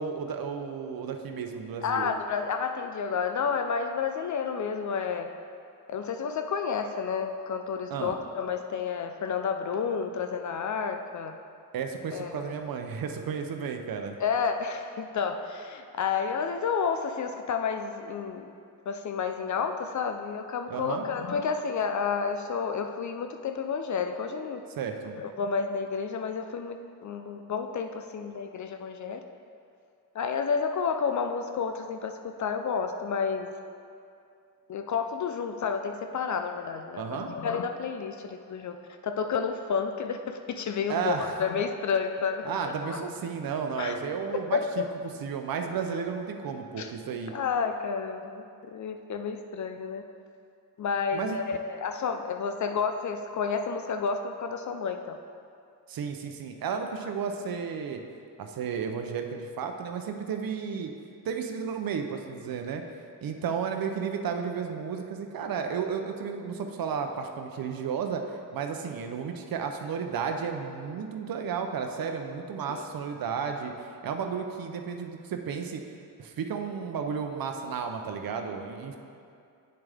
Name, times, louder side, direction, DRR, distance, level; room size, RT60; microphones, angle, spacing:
voice 1, 0.0-2.1 7.9-8.2 11.7-14.2 20.7-21.1 24.8-25.2 36.9-37.3 40.9-41.3 42.4-44.8 45.2-47.3 51.1-51.4 55.9-58.0 58.4-60.9 61.2-62.8 63.2-73.7 74.0-75.8 76.2-79.0, right 6 dB, 70° right, 5 dB, 0.7 m, -33 dB
voice 2, 1.8-5.4 5.9-11.4 12.1-12.6 14.2-18.5 18.9-24.6 25.1-26.8 27.0-29.2 30.1-33.5 34.7-38.8 39.0-42.5 42.8-43.1 43.8-44.0 44.5-45.0 46.8-46.9 47.3-50.0 50.8-55.2 57.0-57.1 72.7-72.8, left 6 dB, 55° left, 6 dB, 0.5 m, -30 dB
7.9 x 7.1 x 3.5 m, 2.5 s
cardioid pair, 80°, 36 cm